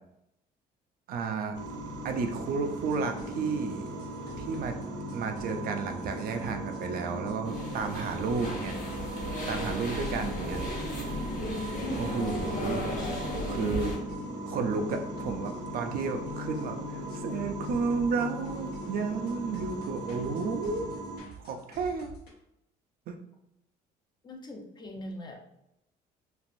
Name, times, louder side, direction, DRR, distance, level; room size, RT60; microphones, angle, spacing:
voice 1, 1.1-1.6 2.0-3.9 4.4-4.8 5.1-8.8 9.5-10.6 12.0-12.9 13.5-13.9 14.5-20.9 21.4-22.1 23.1-23.2, right 4 dB, 60° right, 6 dB, 0.4 m, -32 dB
sound 1, 1.5-21.2, right 1 dB, 80° right, 0.9 m, -38 dB
sound 2, 2.9-12.2 12.7-14.4 14.9-16.7 17.1-22.3, right 2 dB, 70° left, 0.9 m, -51 dB
sound 3, 7.4-14.0, left 1 dB, 50° left, 0.9 m, -35 dB
voice 2, 24.2-25.4, equal, 25° left, 2 dB, 0.5 m, -43 dB
3.2 x 2.4 x 2.5 m, 0.83 s
cardioid pair, 110°, 17 cm